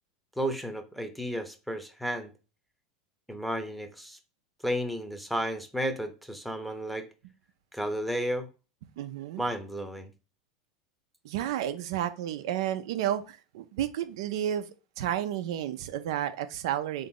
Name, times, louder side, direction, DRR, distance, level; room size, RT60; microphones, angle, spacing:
voice 1, 0.4-2.3 3.3-4.2 4.6-7.1 7.7-8.5 9.4-10.1, equal, ahead, 0.8 m, -32 dB
voice 2, 9.0-9.4 11.2-14.7 15.0-17.1, right 11 dB, 70° right, 0.5 m, -31 dB
3.8 x 2.7 x 3.7 m
hypercardioid pair, 95°, 3 cm